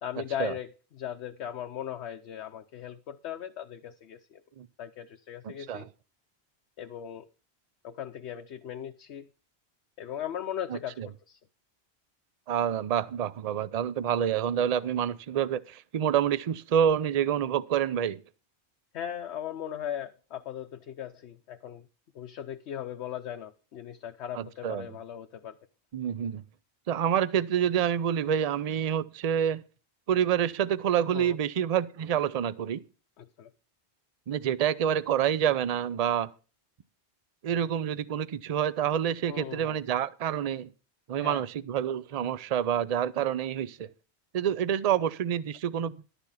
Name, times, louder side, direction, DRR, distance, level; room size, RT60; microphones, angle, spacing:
voice 1, 0.0-4.4 4.8-5.9 6.8-7.3 7.8-9.3 10.0-11.4 18.9-21.9 22.1-25.6 31.1-31.4 33.2-33.5 39.3-39.8 41.1-41.4, left 10 dB, 80° left, 1.0 m, -38 dB
voice 2, 5.4-5.9 10.7-11.1 12.5-18.2 24.3-24.9 25.9-26.4 26.9-29.6 30.1-32.8 34.3-36.3 37.4-40.7 41.1-43.9 44.3-45.9, right 9 dB, 45° right, 0.5 m, -27 dB
12.0 x 7.0 x 5.5 m
omnidirectional pair, 1.1 m